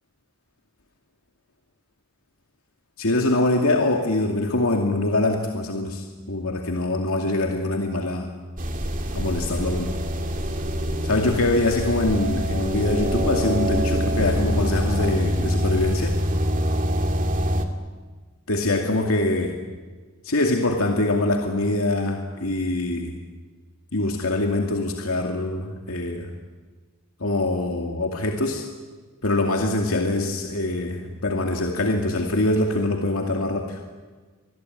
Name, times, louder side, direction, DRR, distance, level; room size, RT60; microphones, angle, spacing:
voice 1, 3.0-8.3 9.1-9.9 11.0-16.2 18.5-19.6 20.2-23.1 23.9-26.3 27.2-28.6 29.2-33.8, left 2 dB, 90° left, 2 dB, 2.5 m, -24 dB
sound 1, 8.6-17.7, equal, 40° right, 2.3 m, -24 dB
26.5 x 21.0 x 9.7 m, 1.4 s
head